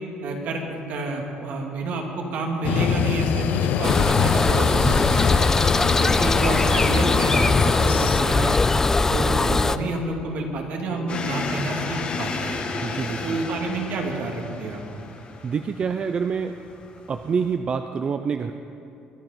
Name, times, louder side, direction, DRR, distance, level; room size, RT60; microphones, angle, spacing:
voice 1, 0.2-5.1 6.0-8.6 9.1-12.6 13.2-14.8, right 2 dB, 65° right, 1 dB, 2.5 m, -29 dB
sound 1, 2.6-8.2, left 9 dB, 65° left, 0.7 m, -25 dB
sound 2, 3.8-9.8, left 3 dB, 15° left, 0.5 m, -20 dB
sound 3, 11.1-17.5, left 4 dB, 40° left, 1.7 m, -33 dB
voice 2, 12.8-13.4 15.4-16.6 17.1-18.5, right 6 dB, 35° right, 8 dB, 0.5 m, -26 dB
23.0 x 10.5 x 5.3 m, 2.7 s
cardioid pair, 120°, 3 cm